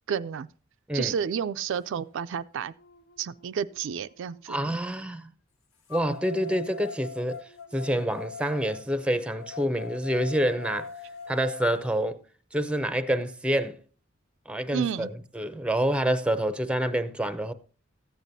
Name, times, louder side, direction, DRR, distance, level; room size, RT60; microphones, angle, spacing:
voice 1, 0.1-0.5 0.9-2.7 3.2-4.6 14.7-15.1, right 7 dB, 65° right, 0.4 m, -30 dB
sound 1, 2.1-2.2 2.7-4.6 5.9-11.9, left 6 dB, 80° left, 1.5 m, -43 dB
voice 2, 4.5-5.3 5.9-7.4 7.7-10.9 11.3-12.2 12.5-13.8 14.5-15.1 15.3-17.5, right 1 dB, 5° right, 0.6 m, -27 dB
14.0 x 9.1 x 2.7 m
head